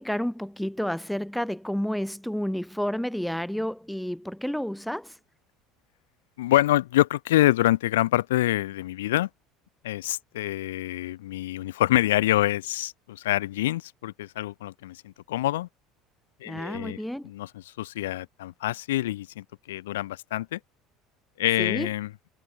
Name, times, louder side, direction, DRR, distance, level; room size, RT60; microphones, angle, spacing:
voice 1, 0.0-5.2 16.4-17.3 21.6-21.9, equal, ahead, 3.2 m, -30 dB
voice 2, 6.4-9.3 9.8-15.7 16.4-17.0 17.2-20.6 21.4-22.1, left 15 dB, 85° left, 1.2 m, -26 dB
hypercardioid pair, 80°, 0 cm